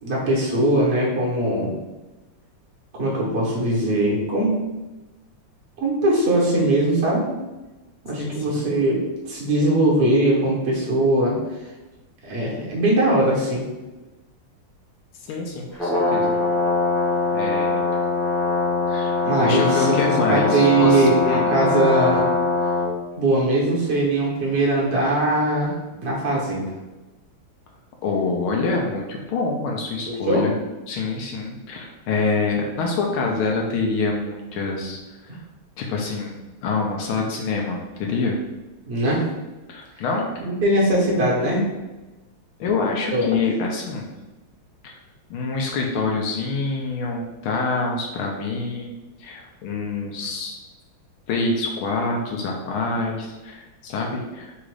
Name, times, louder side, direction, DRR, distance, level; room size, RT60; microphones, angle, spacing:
voice 1, 0.0-1.7 2.9-4.5 5.8-7.3 8.0-9.0 9.3-11.4 12.2-13.7 19.2-22.2 23.2-25.7 26.0-26.7 30.1-30.4 38.9-39.3 40.4-41.6 43.1-43.3, right 1 dB, 40° right, -3 dB, 1.0 m, -20 dB
voice 2, 8.2-8.7 15.3-16.3 17.3-17.8 18.9-21.5 28.0-30.5 30.9-35.4 35.8-38.4 39.7-40.3 42.6-44.1 44.8-45.0 45.3-50.5 51.3-54.5, left 3 dB, 80° left, 0 dB, 1.5 m, -26 dB
Brass instrument, 15.7-22.9, left 3 dB, ahead, 0.6 m, -22 dB
4.0 x 2.4 x 4.7 m, 1.1 s
omnidirectional pair, 2.4 m